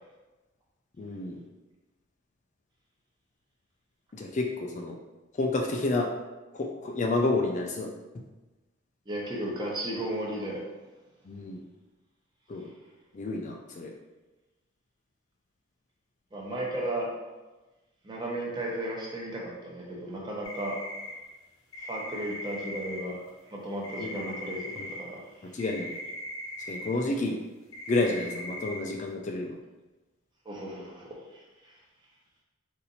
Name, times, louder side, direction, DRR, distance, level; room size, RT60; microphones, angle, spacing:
voice 1, 1.0-1.4 4.1-5.0 5.3-6.1 6.5-7.9 11.3-11.6 12.5-12.7 13.1-13.9 24.0-24.3 24.8-24.9 25.5-25.9 26.7-27.4 27.9-29.6, left 2 dB, 35° left, 1 dB, 0.3 m, -30 dB
voice 2, 9.1-10.6 16.3-17.1 18.0-20.8 21.8-23.2 23.5-25.6 30.4-31.8, right 1 dB, 20° right, -3 dB, 0.8 m, -35 dB
sound 1, 20.4-21.1 21.7-23.0 23.8-25.0 25.6-26.9 27.7-28.8, left 1 dB, 85° left, 0.7 m, -39 dB
4.1 x 2.6 x 4.0 m, 1.1 s
head